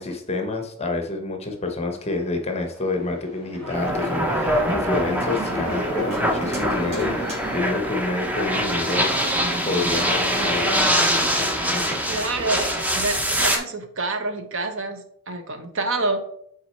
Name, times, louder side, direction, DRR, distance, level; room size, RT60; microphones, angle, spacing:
voice 1, 0.0-11.0 11.7-12.0, left 3 dB, 30° left, 4 dB, 0.8 m, -28 dB
Organ, 1.8-7.6, equal, 35° right, 2.7 m, -39 dB
sound 1, 3.6-12.6, right 1 dB, 80° right, 2.1 m, -39 dB
sound 2, 3.7-13.6, equal, 5° right, 0.6 m, -24 dB
voice 2, 12.1-16.3, right 2 dB, 60° right, 7 dB, 0.9 m, -27 dB
6.1 x 4.0 x 4.3 m, 0.67 s
head